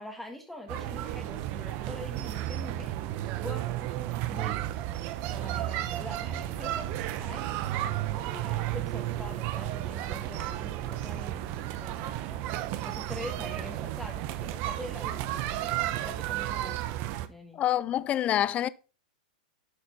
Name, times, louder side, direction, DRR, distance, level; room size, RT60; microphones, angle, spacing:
voice 1, 0.0-2.9 3.4-4.7 5.3-6.9 7.1-12.5 12.8-16.8 17.3-17.6, left 1 dB, ahead, 1.7 m, -44 dB
sound 1, 0.7-17.3, right 13 dB, 45° right, 0.9 m, -33 dB
voice 2, 17.5-18.7, left 12 dB, 30° left, 0.5 m, -26 dB
11.0 x 4.3 x 5.6 m
hypercardioid pair, 120°, 4 cm